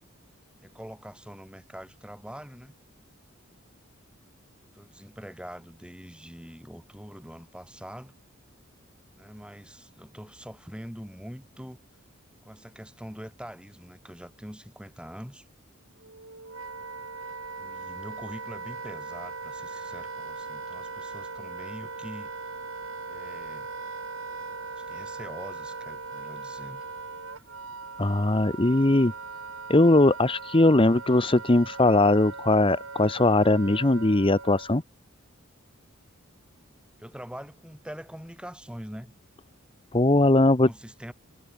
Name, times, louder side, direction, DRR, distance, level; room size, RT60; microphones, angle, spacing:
voice 1, 0.6-2.7 4.7-8.1 9.1-11.8 12.4-15.5 17.6-22.3 23.1-23.7 24.7-26.8 37.0-39.1 40.6-41.1, equal, 5° right, 7.9 m, -43 dB
Wind instrument woodwind instrument, 16.0-34.8, right 4 dB, 75° right, 3.9 m, -39 dB
voice 2, 28.0-29.1 29.7-34.8 39.9-40.7, left 2 dB, 25° left, 1.0 m, -20 dB
head